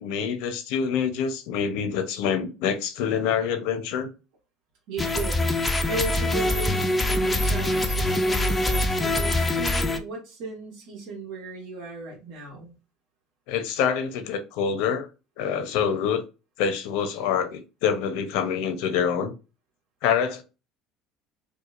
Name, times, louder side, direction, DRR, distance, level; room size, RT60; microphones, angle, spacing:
voice 1, 0.0-4.1 13.5-15.1 15.4-16.2 16.6-19.3 20.0-20.4, left 7 dB, 75° left, 0.8 m, -26 dB
voice 2, 4.9-12.7, right 3 dB, 75° right, 1.5 m, -36 dB
sound 1, 5.0-10.0, left 1 dB, 10° left, 0.5 m, -24 dB
4.7 x 2.3 x 2.5 m
cardioid pair, 140°, 0 cm